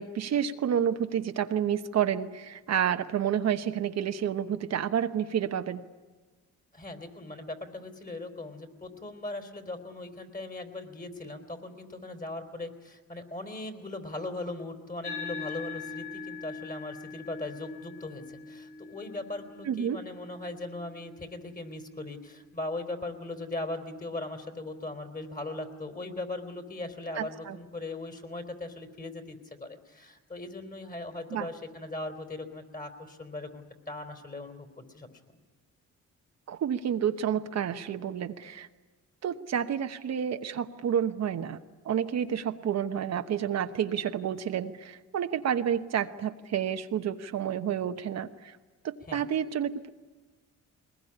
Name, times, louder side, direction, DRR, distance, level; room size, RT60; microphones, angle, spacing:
voice 1, 0.0-5.8 19.6-20.0 27.2-27.6 31.3-31.5 36.5-38.7 39.2-41.6 41.8-48.6 48.8-49.9, right 9 dB, 60° right, 7 dB, 1.1 m, -30 dB
voice 2, 6.7-35.1 49.1-49.3, left 2 dB, 25° left, 6 dB, 3.8 m, -39 dB
sound 1, 15.0-23.8, left 4 dB, 85° left, 3.7 m, -43 dB
21.5 x 20.0 x 10.0 m, 1.3 s
cardioid pair, 90°, 30 cm